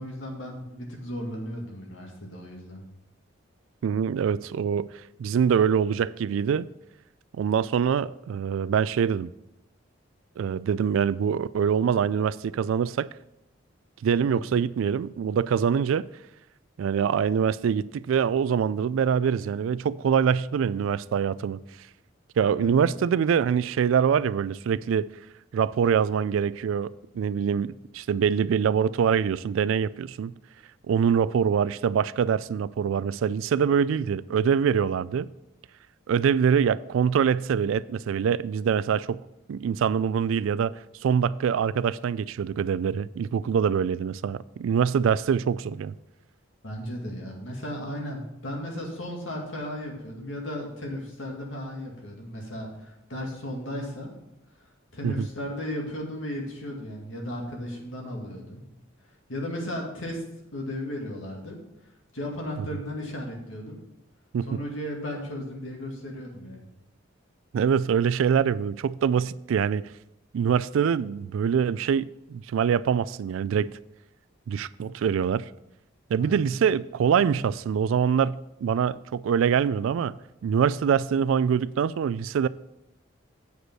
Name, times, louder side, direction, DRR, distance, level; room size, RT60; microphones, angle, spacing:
voice 1, 0.0-2.8 14.3-14.5 22.6-22.9 46.6-54.2 54.9-58.6 59.3-60.2 60.5-61.6 62.1-63.8 64.5-66.7 76.2-76.4, equal, 70° left, 2.1 m, -35 dB
voice 2, 3.8-4.9 5.2-6.7 7.4-9.3 10.4-13.1 14.0-16.1 16.8-21.6 22.4-25.1 25.5-30.3 30.9-35.3 36.1-39.2 39.5-40.7 41.0-45.9 55.0-55.3 64.3-64.5 67.5-69.9 70.3-73.7 74.5-75.5 76.1-80.1 80.4-82.5, right 7 dB, 80° right, 0.3 m, -24 dB
8.1 x 5.2 x 6.0 m
head